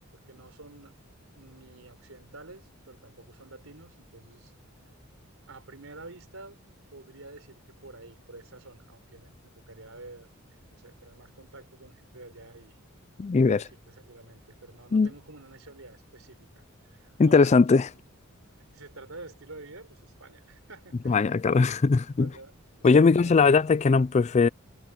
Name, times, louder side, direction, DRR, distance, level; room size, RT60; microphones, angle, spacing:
voice 1, 0.3-0.9 1.4-4.5 5.5-6.6 6.9-12.8 13.4-17.5 18.7-21.3 21.7-22.5 22.8-23.5, right 2 dB, 70° right, 4.4 m, -49 dB
voice 2, 13.2-13.6 14.9-15.1 17.2-17.9 21.1-22.3 22.8-24.5, left 4 dB, 30° left, 0.4 m, -20 dB
head